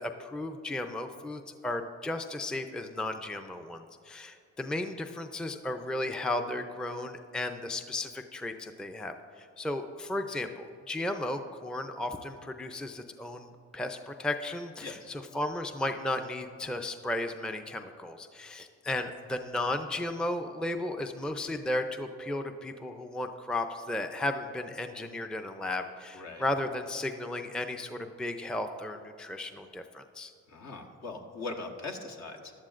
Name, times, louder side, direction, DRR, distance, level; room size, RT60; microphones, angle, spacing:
voice 1, 0.0-30.3, left 1 dB, 5° left, 6 dB, 0.5 m, -34 dB
voice 2, 26.1-26.5 30.5-32.5, left 3 dB, 65° left, 3 dB, 1.3 m, -40 dB
16.0 x 11.5 x 2.5 m, 2.4 s
cardioid pair, 90°, 30 cm